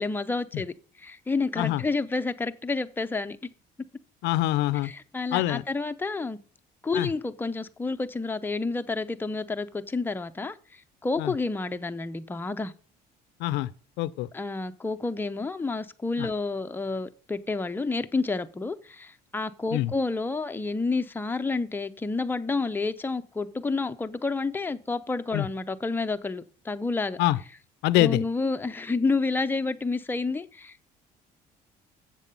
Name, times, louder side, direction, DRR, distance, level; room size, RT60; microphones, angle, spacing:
voice 1, 0.0-3.4 4.8-6.4 6.8-10.6 11.0-12.7 14.3-27.2 27.9-30.9, left 3 dB, 10° left, 0.6 m, -29 dB
voice 2, 4.2-4.9 5.3-5.6 6.9-7.1 11.2-11.3 13.4-13.7 14.0-14.3 16.2-16.3 19.7-19.9 25.3-25.5 27.2-27.4 27.8-28.2, left 15 dB, 85° left, 0.4 m, -24 dB
7.5 x 7.1 x 5.3 m
cardioid pair, 110°, 17 cm